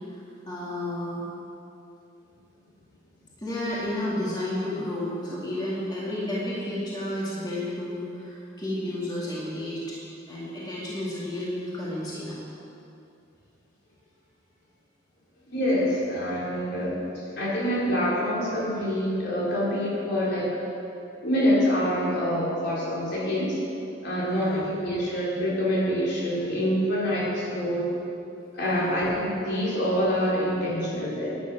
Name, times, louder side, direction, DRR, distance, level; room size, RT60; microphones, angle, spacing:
voice 1, 0.5-1.3 3.4-10.0 10.3-12.4 24.3-24.7 28.7-29.0, left 1 dB, 20° left, -8 dB, 2.5 m, -31 dB
voice 2, 15.5-17.0 17.4-20.6 21.2-23.6 24.0-27.9 28.5-31.4, equal, 60° left, -6 dB, 3.8 m, -26 dB
12.0 x 10.5 x 6.1 m, 2.7 s
head